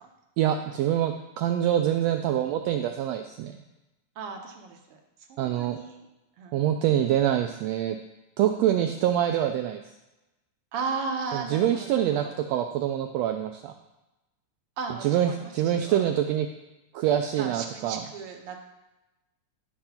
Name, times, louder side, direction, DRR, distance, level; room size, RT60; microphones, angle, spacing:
voice 1, 0.4-3.6 5.4-5.8 6.5-8.0 8.4-9.8 11.3-13.7 15.0-16.5 16.9-18.1, right 11 dB, 85° right, 6 dB, 1.5 m, -25 dB
voice 2, 4.2-4.8 5.3-6.0 6.4-6.6 10.7-12.3 14.8-16.0 17.4-18.6, right 4 dB, 65° right, 3 dB, 1.5 m, -35 dB
10.5 x 4.5 x 5.7 m, 1.0 s
omnidirectional pair, 3.4 m